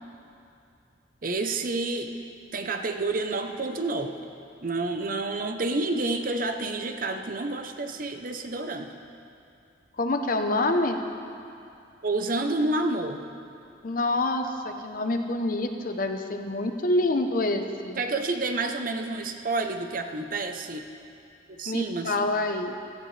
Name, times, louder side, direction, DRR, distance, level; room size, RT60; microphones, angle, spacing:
voice 1, 1.2-2.1 2.5-4.2 4.6-9.0 12.0-13.2 18.0-20.8 21.5-22.2, right 2 dB, 50° right, 6 dB, 0.8 m, -29 dB
voice 2, 10.0-11.0 13.8-18.0 21.7-22.8, left 2 dB, 50° left, 6 dB, 0.8 m, -27 dB
16.0 x 15.0 x 3.3 m, 2.5 s
head